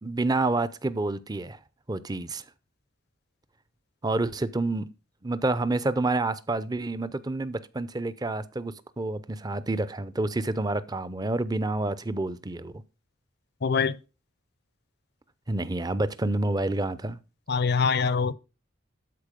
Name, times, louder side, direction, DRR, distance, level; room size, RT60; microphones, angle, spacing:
voice 1, 0.0-1.6 1.9-2.4 4.0-4.9 5.2-12.7 15.5-17.2, right 2 dB, 20° right, 0.5 m, -28 dB
voice 2, 13.6-14.0 17.5-18.3, left 5 dB, 55° left, 0.6 m, -24 dB
12.0 x 4.5 x 5.1 m
head